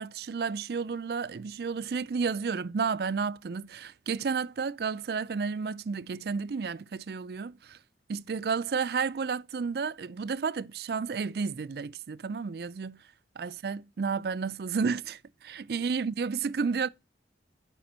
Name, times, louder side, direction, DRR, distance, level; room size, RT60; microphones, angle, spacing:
voice 1, 0.0-7.8 8.1-13.0 13.4-16.9, right 5 dB, 55° right, 0.4 m, -32 dB
7.9 x 5.1 x 6.7 m
head